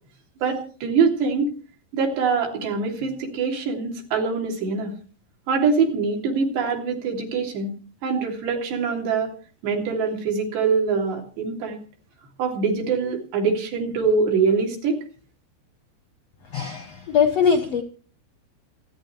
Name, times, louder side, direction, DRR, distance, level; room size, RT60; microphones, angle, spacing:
voice 1, 0.4-1.5 1.9-4.9 5.5-7.7 8.0-9.3 9.6-11.8 12.4-15.0, right 5 dB, 80° right, 0 dB, 5.2 m, -23 dB
voice 2, 16.5-17.8, left 6 dB, 75° left, 7 dB, 1.4 m, -21 dB
27.0 x 10.0 x 3.3 m, 0.40 s
omnidirectional pair, 4.8 m